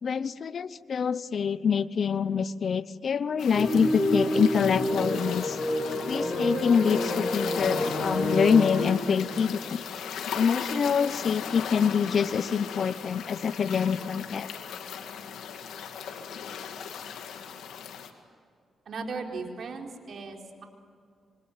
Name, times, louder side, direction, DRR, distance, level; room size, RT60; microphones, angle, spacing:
voice 1, 0.0-5.6 6.1-9.8 10.3-14.5, left 6 dB, 60° left, 17 dB, 0.8 m, -25 dB
sound 1, 3.4-18.1, left 7 dB, 90° left, 2.3 m, -37 dB
sound 2, 3.5-8.8, left 1 dB, 15° left, 5.8 m, -28 dB
voice 2, 18.9-20.6, right 4 dB, 65° right, 2 dB, 4.3 m, -37 dB
26.5 x 25.5 x 8.8 m, 2.2 s
cardioid pair, 80°, 0 cm